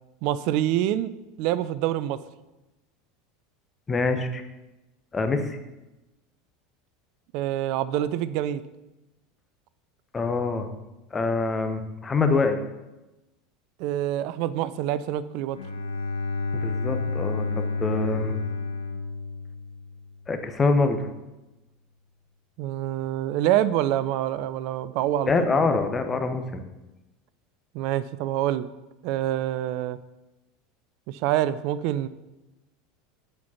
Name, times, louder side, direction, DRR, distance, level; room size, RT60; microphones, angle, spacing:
voice 1, 0.2-1.1 1.4-2.2 7.3-8.6 13.8-15.6 22.6-25.8 27.7-28.7 29.0-30.0 31.1-32.1, right 12 dB, 55° right, 15 dB, 0.4 m, -26 dB
voice 2, 3.9-4.4 5.1-5.6 10.1-10.7 11.1-12.6 16.5-18.4 20.3-21.1 25.3-26.6, left 3 dB, 20° left, 7 dB, 0.9 m, -25 dB
Bowed string instrument, 15.5-20.2, left 3 dB, 85° left, 0.8 m, -30 dB
8.2 x 4.5 x 5.7 m, 1.0 s
figure-of-eight pair, 80°, 0 cm